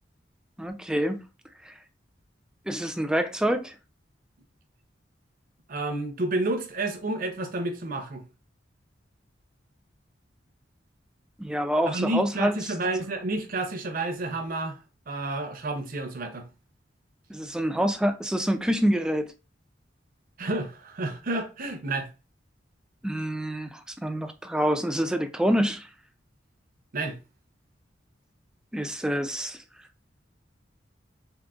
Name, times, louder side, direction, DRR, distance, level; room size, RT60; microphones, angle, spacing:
voice 1, 0.6-1.2 1.6-1.7 2.7-3.7 11.4-12.6 17.3-19.3 23.0-25.9 28.7-29.6, equal, 5° right, 0.3 m, -26 dB
voice 2, 5.7-8.2 11.9-14.8 15.1-16.4 20.4-22.1 26.9-27.2, right 2 dB, 50° right, 0.6 m, -30 dB
3.7 x 2.5 x 2.4 m
head